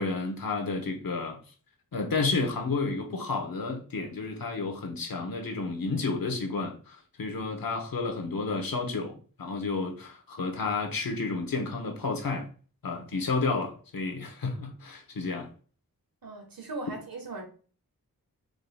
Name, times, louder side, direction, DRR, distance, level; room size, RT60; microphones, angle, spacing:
voice 1, 0.0-1.4 1.9-12.5 12.8-15.5, left 3 dB, 80° left, 1.1 m, -31 dB
voice 2, 16.2-17.4, right 2 dB, 85° right, 1.4 m, -38 dB
5.0 x 4.0 x 2.3 m
cardioid pair, 50°, 34 cm